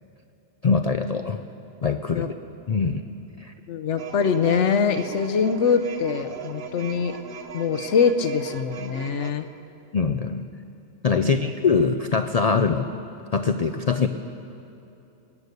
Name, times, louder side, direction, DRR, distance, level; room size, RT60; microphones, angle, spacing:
voice 1, 0.6-1.4 1.8-2.3 2.7-3.0 3.4-3.5 9.9-10.4 11.0-12.9 13.3-14.1, left 5 dB, 85° left, 7 dB, 0.3 m, -23 dB
voice 2, 3.7-7.1 7.5-9.5 11.1-11.5, left 6 dB, 65° left, 9 dB, 1.0 m, -23 dB
sound 1, 4.0-9.3, right 5 dB, 50° right, 1.0 m, -38 dB
21.5 x 9.5 x 6.7 m, 2.9 s
omnidirectional pair, 1.4 m